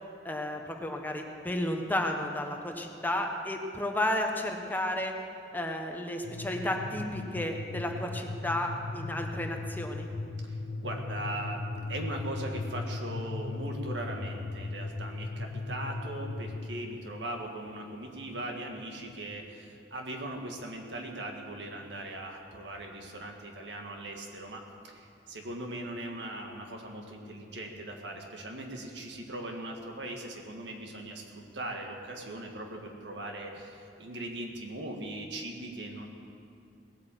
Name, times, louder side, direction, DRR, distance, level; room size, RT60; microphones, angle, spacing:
voice 1, 0.2-5.1 5.5-10.1, left 1 dB, 10° left, 3 dB, 1.1 m, -32 dB
sound 1, 6.2-16.7, left 3 dB, 85° left, 0.8 m, -37 dB
voice 2, 10.4-11.6 11.9-36.1, right 1 dB, 75° right, 2 dB, 1.9 m, -39 dB
18.5 x 8.6 x 7.7 m, 2.5 s
head